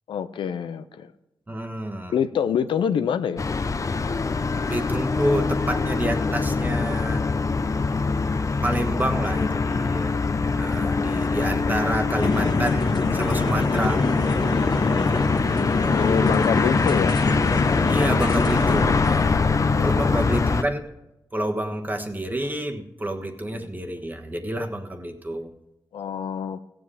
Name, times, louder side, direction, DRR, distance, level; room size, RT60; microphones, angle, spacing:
voice 1, 0.1-1.1 2.1-3.4 15.9-17.2 19.7-20.1 23.2-23.3 23.6-23.7 25.9-26.6, left 8 dB, 85° left, 11 dB, 0.5 m, -26 dB
voice 2, 1.5-2.1 4.6-7.3 8.6-10.1 10.6-14.0 17.9-19.5 19.8-20.9 21.3-25.5, right 1 dB, 20° right, 4 dB, 1.3 m, -28 dB
sound 1, 3.4-20.6, left 4 dB, 40° left, 0.6 m, -23 dB
sound 2, 12.2-19.0, left 3 dB, 60° left, 1.4 m, -26 dB
16.0 x 7.7 x 4.9 m, 0.95 s
cardioid pair, 65°, 8 cm